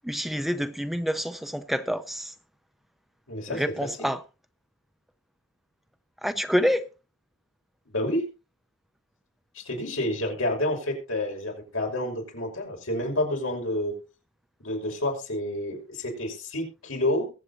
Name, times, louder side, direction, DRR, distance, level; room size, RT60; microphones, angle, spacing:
voice 1, 0.0-2.3 3.5-4.2 6.2-6.9, equal, ahead, 0.5 m, -27 dB
voice 2, 3.3-3.6 4.0-4.1 7.9-8.2 9.5-13.9 14.6-17.3, left 1 dB, 85° left, 5.7 m, -29 dB
22.0 x 7.8 x 2.8 m
head